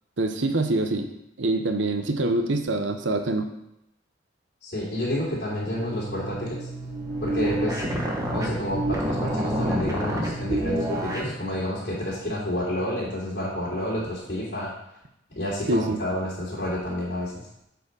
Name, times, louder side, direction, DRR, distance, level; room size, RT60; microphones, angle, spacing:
voice 1, 0.2-1.1 1.4-3.5 15.7-16.0, right 2 dB, 70° right, 6 dB, 0.8 m, -25 dB
voice 2, 4.6-6.6 7.2-7.8 8.3-14.7 15.3-17.3, left 1 dB, 60° left, -8 dB, 3.0 m, -29 dB
sound 1, 5.6-11.3, right 1 dB, 15° right, 1.1 m, -28 dB
sound 2, 7.0-12.9 13.2-13.7 14.0-14.4, left 1 dB, 20° left, 2.1 m, -40 dB
8.1 x 4.9 x 5.4 m, 0.82 s
head